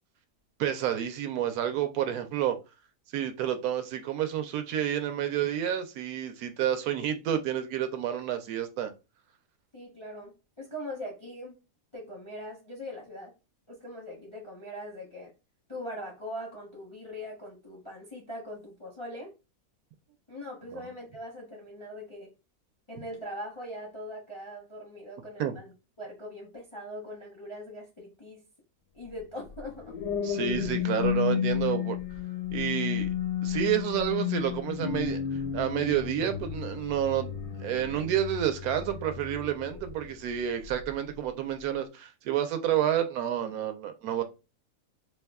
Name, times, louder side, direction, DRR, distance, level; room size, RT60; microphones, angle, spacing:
voice 1, 0.6-2.6 3.1-8.9 20.7-20.9 25.4-25.5 30.2-32.0 32.5-33.1 33.4-37.3 37.6-44.2, right 10 dB, 75° right, 1.0 m, -29 dB
voice 2, 9.7-11.6 11.9-13.3 13.7-15.3 15.7-19.3 20.3-22.3 22.9-25.7 26.0-28.4 28.9-30.0, equal, 35° left, 0.5 m, -41 dB
sound 1, 29.5-40.1 40.6-40.9, left 8 dB, 85° left, 1.2 m, -32 dB
2.8 x 2.2 x 3.4 m
omnidirectional pair, 1.7 m